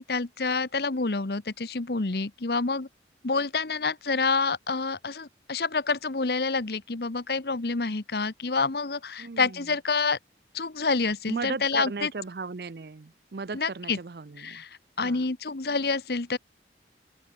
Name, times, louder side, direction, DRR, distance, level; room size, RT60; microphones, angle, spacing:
voice 1, 0.0-2.9 3.2-10.2 10.5-12.1 13.5-14.0 14.4-14.7 15.0-16.4, left 4 dB, 60° left, 1.0 m, -28 dB
voice 2, 9.2-9.7 11.3-14.6 15.0-15.2, right 4 dB, 60° right, 0.6 m, -36 dB
open air
head